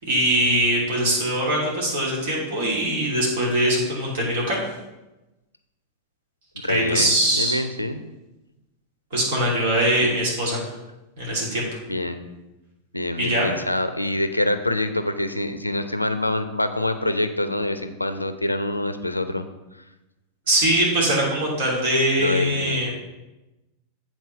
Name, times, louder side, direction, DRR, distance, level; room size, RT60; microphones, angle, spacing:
voice 1, 0.0-4.6 6.7-7.6 9.1-10.6 11.2-11.7 13.2-13.5 20.5-22.9, right 1 dB, 55° right, -3 dB, 2.9 m, -22 dB
voice 2, 6.6-8.0 10.0-10.1 11.9-12.3 12.9-19.4 22.2-22.9, left 1 dB, 85° left, 10 dB, 0.5 m, -26 dB
8.1 x 4.5 x 5.6 m, 1.0 s
figure-of-eight pair, 90°, 0 cm